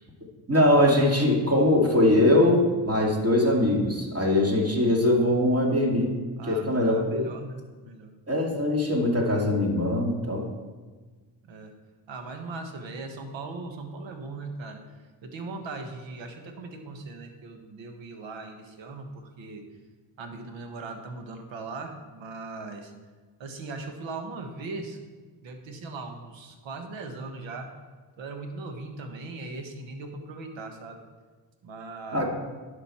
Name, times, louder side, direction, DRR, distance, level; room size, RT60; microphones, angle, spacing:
voice 1, 0.5-6.2 6.4-7.3 8.3-10.5 32.1-32.3, left 1 dB, 30° right, -1 dB, 2.5 m, -22 dB
voice 2, 6.4-8.1 11.4-11.7 12.1-14.8 15.2-19.6 20.2-22.9 23.4-25.0 25.4-27.7 28.2-31.0 31.6-32.2, right 3 dB, 65° right, 5 dB, 1.4 m, -39 dB
11.0 x 5.2 x 4.4 m, 1.4 s
supercardioid pair, 60°, 49 cm